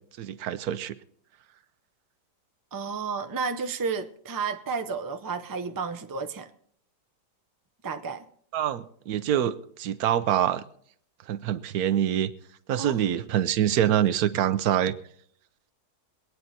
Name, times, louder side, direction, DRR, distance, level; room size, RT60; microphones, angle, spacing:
voice 1, 0.2-1.0 8.5-10.6 11.3-12.3 12.7-14.9, right 10 dB, 65° right, 1.1 m, -25 dB
voice 2, 2.7-6.5 7.8-8.2 12.7-13.2, right 5 dB, 30° right, 0.3 m, -32 dB
22.5 x 9.4 x 4.1 m
omnidirectional pair, 1.9 m